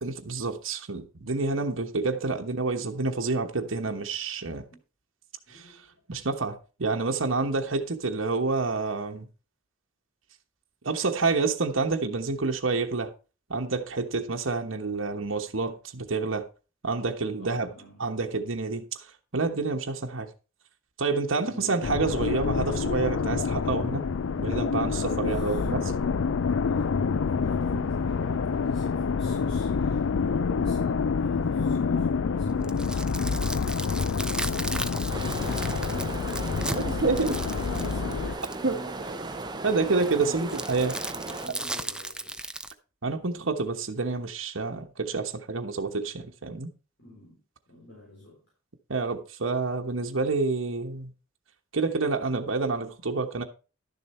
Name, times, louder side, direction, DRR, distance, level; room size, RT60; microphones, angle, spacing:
voice 1, 0.0-4.6 5.5-5.8 6.1-9.3 10.8-13.1 13.5-16.5 16.8-17.7 18.0-18.8 19.3-20.3 21.0-24.0 24.4-25.8 36.7-37.3 38.6-38.8 39.6-40.9 43.0-46.7 48.9-51.1 51.7-53.4, right 3 dB, 75° right, 1.2 m, -28 dB
voice 2, 5.5-5.8 17.4-18.0 21.5-21.9 24.9-26.1 26.7-39.7 40.1-40.6 41.1-42.5 47.0-47.4 47.7-48.5, equal, 60° left, 4.0 m, -45 dB
sound 1, 21.8-38.4, left 5 dB, 75° left, 0.5 m, -27 dB
sound 2, 32.5-38.7 40.5-42.7, right 2 dB, 5° right, 0.4 m, -36 dB
sound 3, 35.1-41.5, right 3 dB, 20° right, 0.9 m, -37 dB
11.5 x 6.8 x 4.3 m
head